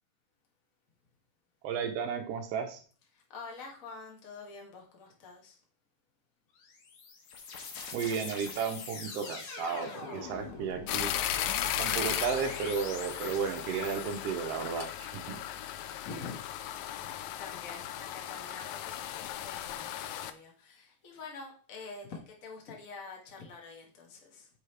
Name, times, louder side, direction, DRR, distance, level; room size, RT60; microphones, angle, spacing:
voice 1, 1.6-2.8 7.9-11.1 11.8-15.4, right 6 dB, 85° right, 5 dB, 1.3 m, -33 dB
voice 2, 3.1-5.6 16.0-17.1 17.4-24.5, left 4 dB, 40° left, 0 dB, 1.3 m, -47 dB
sound 1, 6.6-14.2, left 4 dB, 65° left, 2.4 m, -43 dB
sound 2, 10.9-20.3, left 11 dB, 80° left, 1.6 m, -36 dB
8.3 x 5.1 x 3.3 m, 0.42 s
omnidirectional pair, 3.8 m